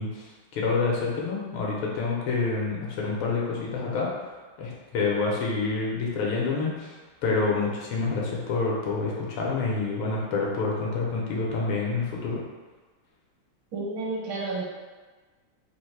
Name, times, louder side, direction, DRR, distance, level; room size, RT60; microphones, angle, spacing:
voice 1, 0.0-7.0 7.2-12.4, left 4 dB, 85° left, -3 dB, 1.7 m, -28 dB
voice 2, 13.7-14.6, right 3 dB, 75° right, -3 dB, 1.8 m, -31 dB
4.0 x 2.7 x 4.5 m, 1.3 s
omnidirectional pair, 2.2 m